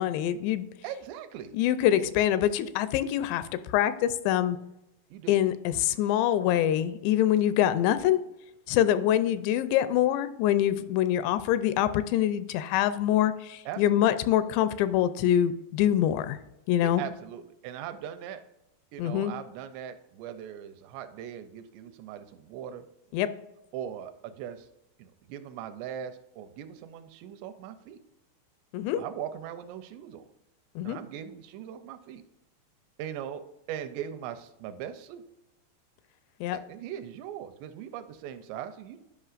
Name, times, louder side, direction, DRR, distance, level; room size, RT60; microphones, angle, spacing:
voice 1, 0.0-0.7 1.5-3.4 3.7-4.6 5.3-8.2 8.7-16.4 16.7-17.0 19.0-19.3 23.1-23.3 28.7-29.0 30.8-31.0 36.4-36.6, left 11 dB, 85° left, 13 dB, 2.7 m, -25 dB
voice 2, 0.8-1.5 5.1-5.4 13.7-14.1 16.7-18.4 18.9-22.8 23.7-24.7 25.0-28.0 28.9-30.2 30.8-32.2 33.0-35.2 36.5-39.0, right 10 dB, 85° right, 9 dB, 2.7 m, -40 dB
10.5 x 5.6 x 2.4 m, 0.89 s
omnidirectional pair, 5.0 m